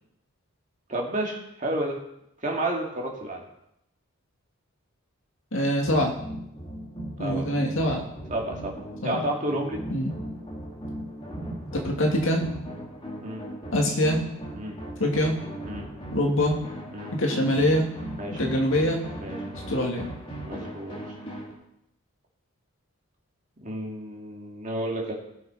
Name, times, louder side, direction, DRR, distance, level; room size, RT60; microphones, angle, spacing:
voice 1, 0.9-2.0 2.4-3.4 7.2-7.5 8.3-8.7 9.0-9.8 13.2-13.4 14.6-14.8 15.7-15.9 16.9-17.1 18.2-18.4 19.2-19.4 20.4-20.9 23.6-25.1, right 1 dB, 35° right, -1 dB, 2.1 m, -30 dB
voice 2, 5.5-6.1 7.2-8.1 9.0-9.2 9.9-10.1 11.8-12.4 13.7-14.2 15.0-15.4 16.1-16.6 17.1-17.9 18.4-19.0 19.7-20.1, left 1 dB, 65° left, 1 dB, 2.1 m, -24 dB
sound 1, 5.8-21.5, right 1 dB, 25° left, 2.2 m, -38 dB
18.0 x 6.3 x 4.9 m, 0.81 s
head